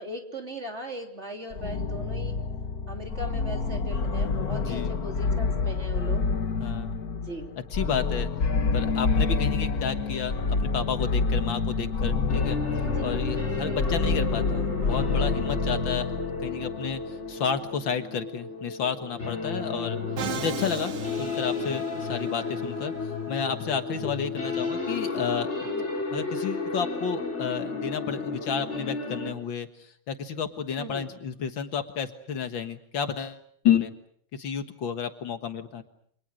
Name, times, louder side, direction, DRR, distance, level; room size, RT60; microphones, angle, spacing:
voice 1, 0.0-2.4 2.9-6.2 7.1-7.5 12.8-13.2 13.6-14.0 23.9-24.2 25.6-25.9 30.8-31.1, equal, 30° right, 4 dB, 3.5 m, -39 dB
sound 1, 1.5-17.2, left 4 dB, 50° left, 1.9 m, -28 dB
voice 2, 4.5-4.9 6.6-7.0 7.7-8.3 8.7-12.6 13.0-16.1 16.4-17.0 17.3-20.0 20.4-20.9 21.2-22.9 23.3-25.7 26.1-29.7 30.1-33.4 33.6-33.9 34.3-35.8, left 7 dB, 65° left, 9 dB, 2.2 m, -31 dB
sound 2, 12.3-29.3, left 3 dB, 30° left, 5.3 m, -33 dB
Musical instrument, 20.2-22.3, right 6 dB, 80° right, 2.3 m, -36 dB
29.0 x 26.5 x 6.4 m, 0.63 s
omnidirectional pair, 2.3 m